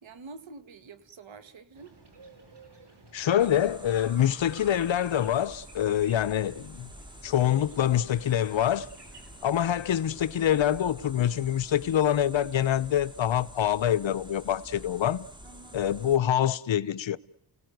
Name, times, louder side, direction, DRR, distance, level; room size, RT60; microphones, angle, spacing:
voice 1, 0.0-1.9 15.4-15.9, right 4 dB, 90° right, 1.9 m, -47 dB
sound 1, 1.7-9.8, right 3 dB, 60° right, 5.0 m, -55 dB
voice 2, 3.1-6.9 7.2-8.9 9.4-15.3 15.7-17.2, left 10 dB, 80° left, 0.9 m, -25 dB
sound 2, 3.4-16.2, equal, 10° right, 2.2 m, -48 dB
30.0 x 18.0 x 9.3 m
cardioid pair, 65°, 45 cm